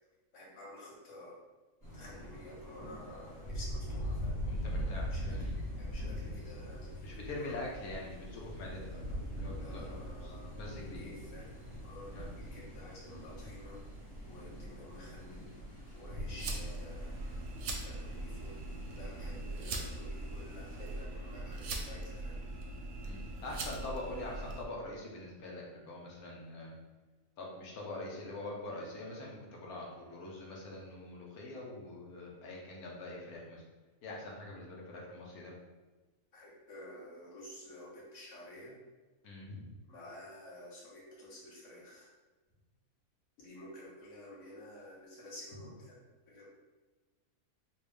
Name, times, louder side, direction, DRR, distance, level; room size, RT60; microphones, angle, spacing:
voice 1, 0.3-1.4 1.9-4.3 5.1-7.5 8.9-9.1 9.6-10.5 10.9-11.5 11.8-13.8 14.3-15.4 15.9-17.1 17.8-18.5 18.9-22.4 36.3-38.7 39.9-42.1 43.4-46.0 46.3-46.5, left 1 dB, 60° left, -4 dB, 1.3 m, -51 dB
Thunder, 1.8-21.0, equal, 15° left, 1.1 m, -42 dB
voice 2, 4.5-5.5 7.0-8.9 9.3-11.0 12.1-12.3 23.0-26.8 27.4-33.6 34.0-35.5 39.2-39.7, left 2 dB, 80° left, -2 dB, 1.3 m, -44 dB
sound 1, 16.4-24.6, right 2 dB, 70° right, 0.9 m, -41 dB
3.4 x 2.5 x 3.3 m, 1.2 s
omnidirectional pair, 1.6 m